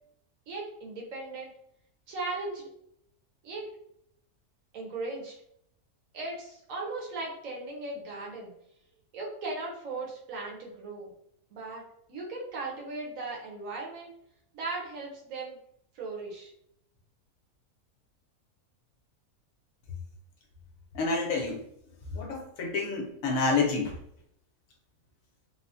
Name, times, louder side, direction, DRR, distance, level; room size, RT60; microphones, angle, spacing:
voice 1, 0.5-1.5 2.1-2.7 3.4-3.6 4.7-5.3 6.1-8.5 9.1-11.1 11.5-11.8 12.1-14.1 14.5-15.6 15.9-16.5, right 3 dB, 65° right, -2 dB, 1.1 m, -37 dB
voice 2, 20.9-21.6 22.1-24.0, left 4 dB, 70° left, 1 dB, 0.9 m, -28 dB
3.3 x 2.1 x 2.5 m, 0.73 s
omnidirectional pair, 1.6 m